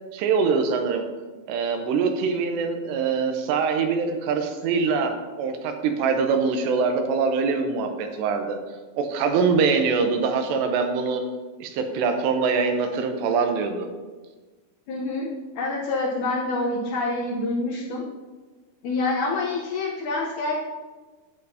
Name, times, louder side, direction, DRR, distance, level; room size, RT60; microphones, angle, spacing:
voice 1, 0.1-1.0 1.5-8.6 8.9-11.2 11.6-13.9, right 5 dB, 85° right, 5 dB, 3.0 m, -23 dB
voice 2, 14.9-18.0 18.8-20.5, left 2 dB, 85° left, -4 dB, 1.7 m, -27 dB
11.0 x 7.6 x 2.8 m, 1.3 s
omnidirectional pair, 5.0 m